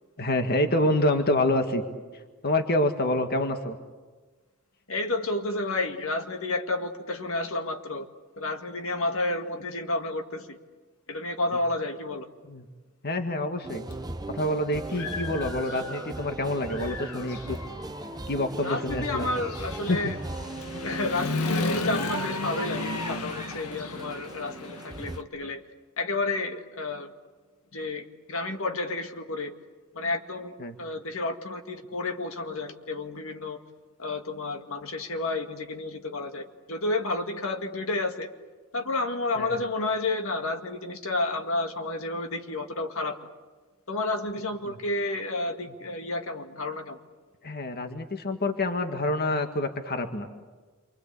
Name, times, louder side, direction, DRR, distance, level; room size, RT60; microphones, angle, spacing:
voice 1, 0.2-1.8 2.4-3.8 12.5-12.6 13.0-13.9 14.3-17.6 18.3-19.3 19.9-20.1 30.6-30.7 39.4-39.6 44.7-44.8 47.4-50.3, left 1 dB, 45° left, 6 dB, 1.8 m, -27 dB
voice 2, 4.9-8.1 8.4-10.6 11.1-12.3 18.6-20.2 20.8-25.6 26.0-27.1 27.7-29.5 29.9-33.6 34.0-38.3 38.7-43.3 43.9-47.0, left 2 dB, 65° left, 5 dB, 2.0 m, -31 dB
sound 1, 13.6-25.2, right 2 dB, 20° right, 0.8 m, -38 dB
Human voice / Motorcycle, 13.9-14.0 14.5-16.3 16.6-25.2, left 3 dB, 90° left, 1.8 m, -34 dB
29.0 x 24.5 x 8.4 m, 1.3 s
head